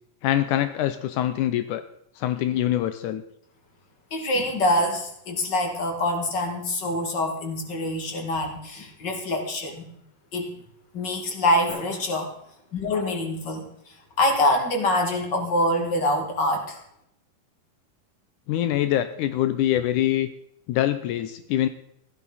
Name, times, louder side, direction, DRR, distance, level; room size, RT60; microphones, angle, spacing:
voice 1, 0.2-1.8 2.2-3.2 18.5-20.3 20.7-21.7, left 12 dB, 85° left, 11 dB, 1.8 m, -24 dB
voice 2, 4.1-9.8 10.3-10.5 10.9-12.3 12.7-16.8, left 1 dB, 35° left, 3 dB, 2.6 m, -25 dB
Drum, 11.7-13.7, left 1 dB, 65° left, 8.3 m, -45 dB
16.5 x 12.5 x 4.2 m, 0.74 s
omnidirectional pair, 4.3 m